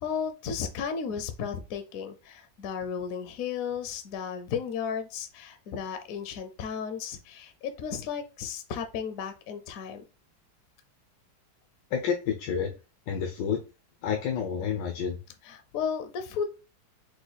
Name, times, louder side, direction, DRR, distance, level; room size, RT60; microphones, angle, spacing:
voice 1, 0.0-10.0 15.4-16.4, left 7 dB, 65° left, 7 dB, 0.9 m, -34 dB
voice 2, 11.9-12.7 13.1-13.6 14.0-15.2, left 7 dB, 85° left, 2 dB, 1.4 m, -29 dB
4.7 x 2.2 x 3.9 m, 0.31 s
omnidirectional pair, 1.9 m